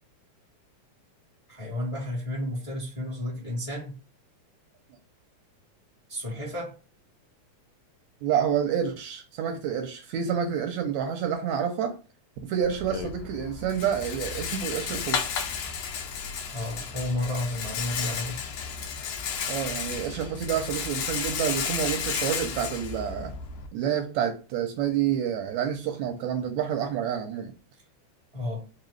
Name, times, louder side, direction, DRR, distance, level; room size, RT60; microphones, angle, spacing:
voice 1, 1.5-4.0 6.1-6.7 16.5-18.5 28.3-28.7, left 1 dB, 45° left, 0.4 m, -32 dB
voice 2, 8.2-12.0 12.4-15.3 19.5-23.3 23.7-27.5, right 8 dB, 80° right, 1.7 m, -28 dB
Rattle, 12.6-23.7, left 6 dB, 80° left, 1.6 m, -33 dB
4.8 x 2.3 x 3.2 m
omnidirectional pair, 3.5 m